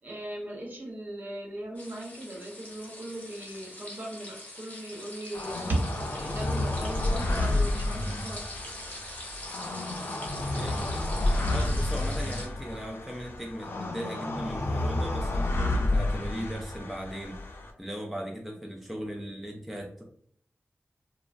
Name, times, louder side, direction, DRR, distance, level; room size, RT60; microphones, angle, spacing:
voice 1, 0.0-8.7, right 1 dB, 50° right, -1 dB, 0.8 m, -37 dB
sound 1, 1.7-12.5, left 1 dB, 40° left, 0.8 m, -43 dB
sound 2, 5.3-17.7, left 2 dB, 65° left, 0.5 m, -30 dB
voice 2, 10.5-11.1 11.4-17.4 17.8-20.0, equal, ahead, 0 dB, 0.4 m, -38 dB
3.1 x 2.0 x 2.4 m, 0.62 s
wide cardioid pair, 110°, 4 cm